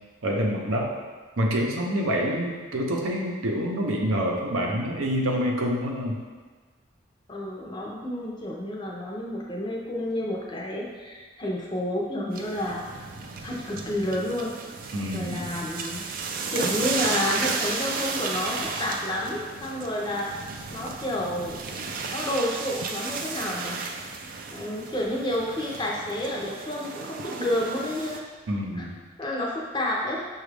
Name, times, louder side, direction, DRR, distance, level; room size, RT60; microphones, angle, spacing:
voice 1, 0.2-0.9 1.4-6.2 14.9-15.5 28.5-29.0, equal, 90° right, 0 dB, 0.7 m, -27 dB
voice 2, 7.3-13.1 13.4-14.6 15.1-16.0 16.5-23.8 24.5-28.2 28.8-28.9 29.2-30.3, left 1 dB, 20° left, -2 dB, 0.5 m, -30 dB
sound 1, 12.3-28.2, right 4 dB, 45° right, 0.3 m, -34 dB
5.9 x 2.4 x 3.3 m, 1.4 s
head